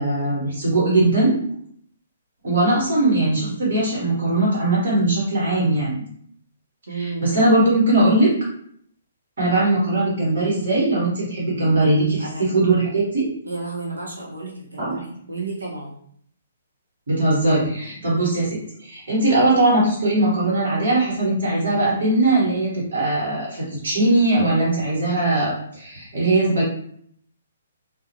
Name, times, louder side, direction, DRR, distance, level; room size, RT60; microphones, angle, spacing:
voice 1, 0.0-1.3 2.4-6.0 7.0-8.3 9.4-13.3 14.8-14.9 17.1-26.6, right 2 dB, 65° right, -7 dB, 1.2 m, -20 dB
voice 2, 6.9-7.4 12.2-12.5 13.5-16.0, right 3 dB, 85° right, -2 dB, 0.7 m, -32 dB
2.3 x 2.0 x 2.7 m, 0.64 s
figure-of-eight pair, 130°, 0 cm